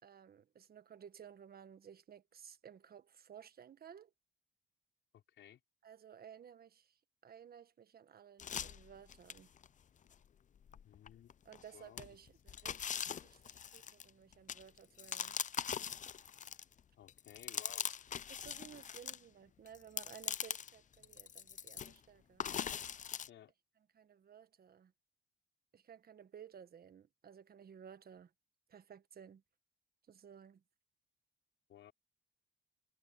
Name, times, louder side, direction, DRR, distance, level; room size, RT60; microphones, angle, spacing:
voice 1, 0.0-4.1 5.8-7.0 7.2-9.5 11.4-15.4 18.3-22.4 23.9-24.9 25.7-28.3 28.7-29.4 30.1-30.6, right 8 dB, 50° right, 1.4 m, -56 dB
voice 2, 5.1-5.6 10.8-11.3 11.7-12.2 17.0-17.8 23.3-23.5 31.7-31.9, left 11 dB, 75° left, 4.5 m, -57 dB
sound 1, 8.4-9.7 10.1-10.2 10.7-11.6 12.0-16.8 17.1-19.2 19.7-20.7 21.0-22.0 22.4-23.3, left 8 dB, 40° left, 0.6 m, -41 dB
cardioid pair, 90°, 20 cm